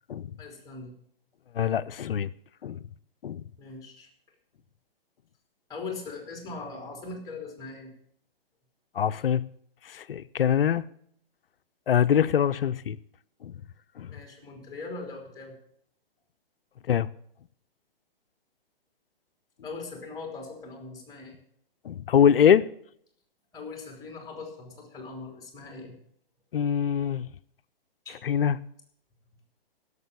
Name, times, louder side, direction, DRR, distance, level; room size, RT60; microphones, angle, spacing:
voice 1, 0.4-0.9 3.6-4.1 5.7-7.9 14.1-15.5 19.6-21.4 23.5-26.0 28.0-28.2, left 3 dB, 10° left, 3.3 m, -40 dB
voice 2, 1.5-2.3 2.6-2.8 3.2-3.4 8.9-9.4 9.8-10.8 11.9-13.0 13.4-13.5 14.0-14.2 16.9-17.1 21.8-22.7 26.5-27.3 28.2-28.6, left 8 dB, 65° left, 0.7 m, -23 dB
16.0 x 6.8 x 7.0 m
hypercardioid pair, 135°, 30 cm